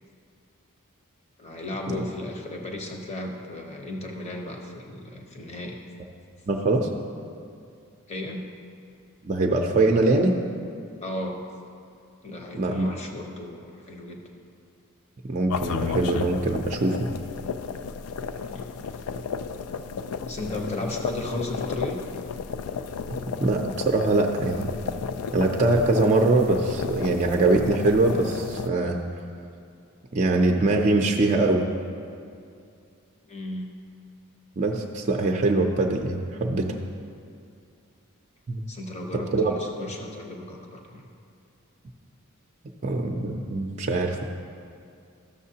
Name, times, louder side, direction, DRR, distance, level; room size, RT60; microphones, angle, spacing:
voice 1, 1.4-5.8 8.1-8.5 11.0-11.4 12.2-14.2 18.4-18.7 20.3-22.0 33.2-33.7 38.7-41.1, left 1 dB, 30° left, 2 dB, 0.8 m, -34 dB
voice 2, 6.5-6.9 9.2-10.4 12.5-12.9 15.3-17.1 23.4-24.7 25.3-29.0 30.1-31.7 34.6-36.8 38.5-38.6 39.1-39.5 42.8-44.2, right 2 dB, 35° right, 2 dB, 0.5 m, -23 dB
sound 1, 15.5-28.7, left 5 dB, 70° left, 0.3 m, -33 dB
13.0 x 6.6 x 2.8 m, 2.4 s
head